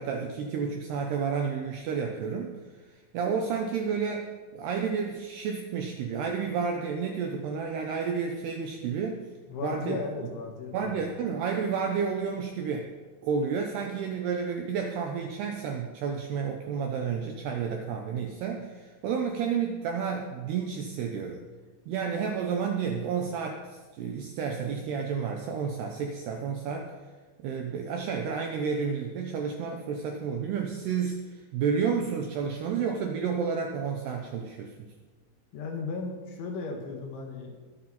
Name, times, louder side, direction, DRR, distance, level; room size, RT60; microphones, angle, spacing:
voice 1, 0.0-9.3 9.6-10.0 10.7-12.9 13.2-21.4 21.9-27.0 27.4-34.7, right 6 dB, 80° right, 3 dB, 2.4 m, -31 dB
voice 2, 9.5-11.0 35.5-37.6, left 4 dB, 70° left, 2 dB, 4.0 m, -36 dB
21.5 x 8.7 x 4.3 m, 1.3 s
omnidirectional pair, 5.8 m